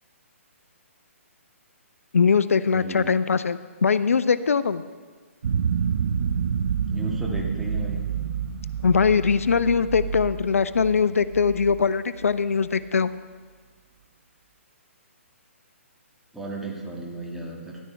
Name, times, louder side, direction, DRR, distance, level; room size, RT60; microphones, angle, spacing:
voice 1, 2.1-4.8 8.8-13.1, left 5 dB, 80° left, 15 dB, 0.4 m, -21 dB
voice 2, 2.7-3.1 6.9-8.0 16.3-17.8, right 1 dB, 5° right, -3 dB, 1.9 m, -34 dB
sound 1, 5.4-12.5, right 7 dB, 65° right, 0.5 m, -28 dB
13.5 x 11.0 x 3.4 m, 1.5 s
figure-of-eight pair, 135°, 8 cm